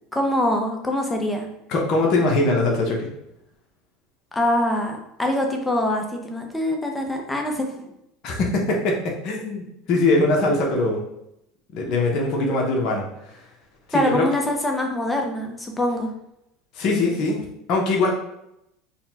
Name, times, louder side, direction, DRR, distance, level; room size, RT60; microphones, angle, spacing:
voice 1, 0.1-1.5 4.3-7.9 13.9-16.1, left 1 dB, 10° left, 2 dB, 0.8 m, -24 dB
voice 2, 1.7-3.1 8.2-11.0 11.7-13.0 13.9-14.3 16.7-18.1, left 2 dB, 55° left, 0 dB, 0.9 m, -22 dB
4.1 x 2.3 x 4.1 m, 0.82 s
supercardioid pair, 110°, 0 cm